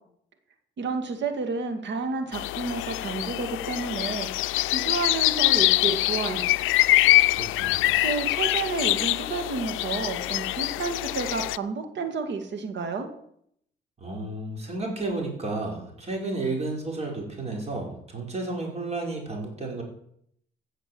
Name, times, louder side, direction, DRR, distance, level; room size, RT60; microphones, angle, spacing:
voice 1, 0.8-6.5 7.9-13.1, right 4 dB, 65° right, 7 dB, 2.1 m, -31 dB
sound 1, 2.3-11.6, left 18 dB, 90° left, 0.4 m, -24 dB
voice 2, 7.3-8.0 14.0-19.8, right 2 dB, 30° right, 0 dB, 5.1 m, -32 dB
15.5 x 6.7 x 7.8 m, 0.71 s
cardioid pair, 90°, 20 cm